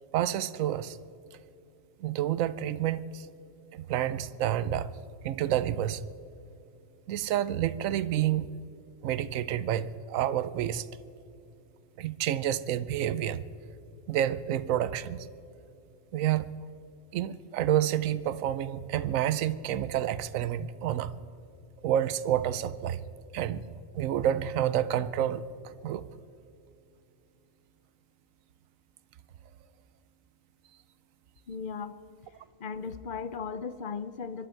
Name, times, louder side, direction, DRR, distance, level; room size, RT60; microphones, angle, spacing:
voice 1, 0.1-1.0 2.0-3.3 3.7-4.9 5.2-6.0 7.1-8.5 9.0-10.9 12.0-13.4 14.1-15.3 16.1-16.5 17.1-21.1 21.8-23.0 23.3-23.6 23.9-26.1, right 11 dB, 85° right, 15 dB, 1.0 m, -29 dB
voice 2, 31.5-32.0 32.6-34.5, left 5 dB, 50° left, 13 dB, 0.7 m, -36 dB
25.0 x 12.0 x 4.5 m, 2.5 s
omnidirectional pair, 1.4 m